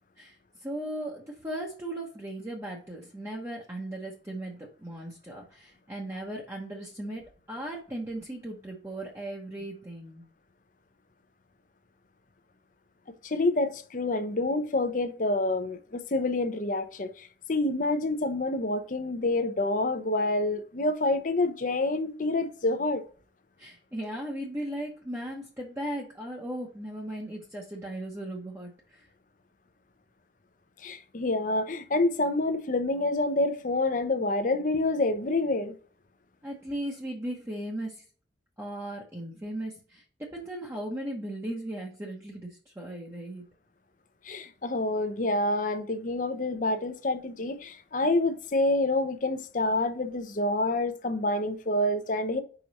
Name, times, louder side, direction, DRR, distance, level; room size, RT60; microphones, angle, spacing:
voice 1, 0.2-10.3 23.6-29.1 36.4-38.0 38.6-43.4, right 1 dB, 15° right, 1.0 m, -37 dB
voice 2, 13.2-23.0 30.8-35.7 44.2-52.4, left 2 dB, 45° left, 0.7 m, -27 dB
5.0 x 4.5 x 4.1 m
head